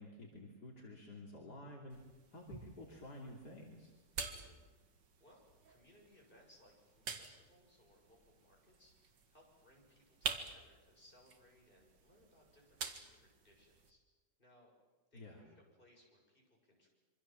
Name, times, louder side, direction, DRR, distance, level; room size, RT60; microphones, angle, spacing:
voice 1, 0.0-2.0 2.3-3.9 15.1-15.4, left 1 dB, 65° left, -1 dB, 3.5 m, -51 dB
sound 1, 1.9-13.9, right 5 dB, 75° right, 2.4 m, -49 dB
voice 2, 4.3-4.6 5.2-14.0 14.4-14.7 15.1-16.9, left 1 dB, 30° left, -1 dB, 6.9 m, -67 dB
26.5 x 24.5 x 7.6 m, 1.3 s
omnidirectional pair, 1.9 m